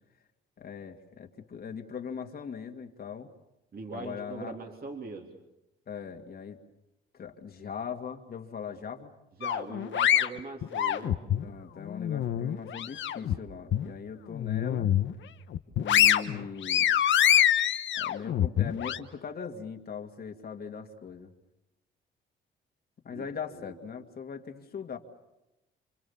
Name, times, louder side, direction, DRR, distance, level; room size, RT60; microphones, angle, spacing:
voice 1, 0.6-3.3 3.9-4.6 5.9-6.6 7.1-9.1 11.4-14.9 15.8-16.9 17.9-21.3 23.0-25.0, left 6 dB, 50° left, 3 dB, 2.3 m, -40 dB
voice 2, 3.7-5.4 9.4-11.2 23.1-23.8, right 3 dB, 50° right, 2 dB, 3.3 m, -41 dB
sound 1, 9.4-11.4 11.9-13.3 13.7-13.9 14.3-15.1 15.5-19.0, left 10 dB, 70° left, 1.3 m, -25 dB
28.5 x 26.0 x 7.2 m, 0.94 s
cardioid pair, 90°, 20 cm